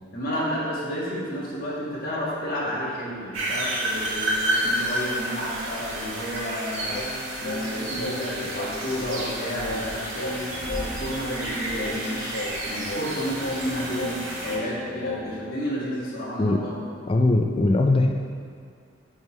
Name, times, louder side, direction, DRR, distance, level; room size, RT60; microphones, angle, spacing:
voice 1, 0.1-7.0 7.4-14.2 14.4-16.8, equal, 45° left, -7 dB, 1.6 m, -31 dB
sound 1, 3.3-14.6, right 1 dB, 80° right, 1.6 m, -30 dB
Singing, 6.9-15.5, left 1 dB, 70° left, 1.0 m, -35 dB
voice 2, 17.1-18.1, left 2 dB, 25° left, 3 dB, 0.3 m, -20 dB
10.5 x 3.7 x 3.1 m, 2.2 s
head